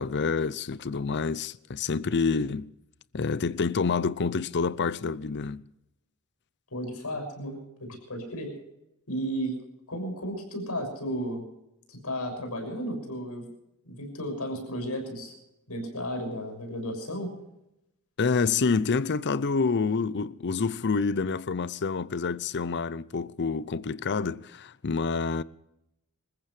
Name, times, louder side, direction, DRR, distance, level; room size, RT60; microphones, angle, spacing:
voice 1, 0.0-2.7 3.1-5.6 18.2-25.4, left 4 dB, 50° left, 0.6 m, -27 dB
voice 2, 6.7-8.5 9.1-9.6 9.9-11.4 11.9-13.5 13.8-15.3 15.7-17.3, equal, 85° left, 6.4 m, -34 dB
26.5 x 15.0 x 3.3 m
head